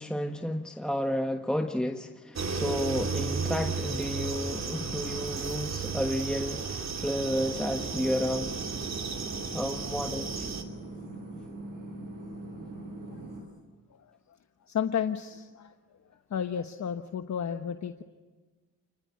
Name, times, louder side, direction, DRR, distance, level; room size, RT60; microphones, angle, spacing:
voice 1, 0.0-8.5 9.5-10.5, equal, 5° left, 4 dB, 1.4 m, -31 dB
sound 1, 2.4-10.6, right 4 dB, 55° right, 2.9 m, -34 dB
sound 2, 7.2-13.4, right 2 dB, 75° right, 6.4 m, -42 dB
voice 2, 14.7-15.7 16.3-18.0, left 8 dB, 55° left, 7 dB, 1.2 m, -32 dB
29.0 x 20.0 x 9.7 m, 1.3 s
cardioid pair, 75°, 33 cm